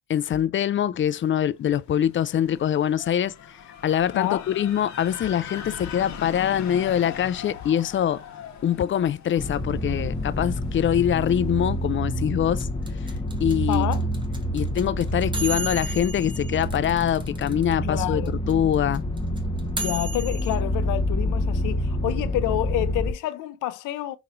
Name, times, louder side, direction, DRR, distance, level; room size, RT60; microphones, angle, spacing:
voice 1, 0.1-3.3 3.8-8.2 8.6-12.7 13.4-14.0 14.5-18.2 18.5-19.0, left 10 dB, 40° left, 0.4 m, -24 dB
sound 1, 1.7-11.5, left 7 dB, 65° left, 1.1 m, -41 dB
voice 2, 4.1-4.5 13.7-14.0 17.8-18.3 19.8-24.2, left 14 dB, 85° left, 0.6 m, -28 dB
sound 2, 9.4-23.1, equal, 15° left, 1.0 m, -28 dB
sound 3, 12.6-17.7 18.0-18.1 18.3-20.6, right 3 dB, 15° right, 1.1 m, -33 dB
5.9 x 3.1 x 2.6 m
cardioid pair, 90°, 30 cm